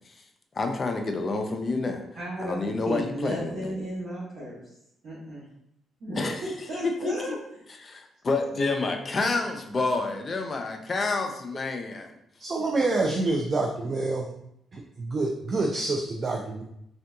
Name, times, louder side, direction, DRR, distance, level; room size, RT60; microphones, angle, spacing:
voice 1, 0.5-2.0 2.4-3.7 6.2-6.4 6.8-7.3 7.8-12.1, left 3 dB, 35° left, 3 dB, 0.5 m, -28 dB
voice 2, 2.1-4.7 5.0-5.5 6.0-7.4, equal, 60° right, -10 dB, 1.3 m, -34 dB
voice 3, 12.4-14.3 14.7-16.6, right 2 dB, 40° right, 0 dB, 0.4 m, -27 dB
3.6 x 2.7 x 2.3 m, 0.77 s
cardioid pair, 90°, 0 cm